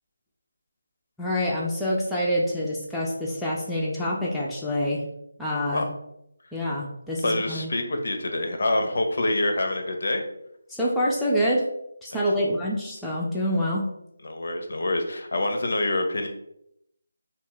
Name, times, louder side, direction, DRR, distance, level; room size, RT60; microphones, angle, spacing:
voice 1, 1.2-5.0 5.4-5.9 6.5-7.7 10.7-11.7 12.0-13.9, equal, 5° left, -7 dB, 0.3 m, -26 dB
voice 2, 7.2-10.2 14.2-16.3, left 2 dB, 60° left, 5 dB, 0.5 m, -26 dB
2.1 x 2.0 x 3.7 m, 0.79 s
figure-of-eight pair, 160°, 0 cm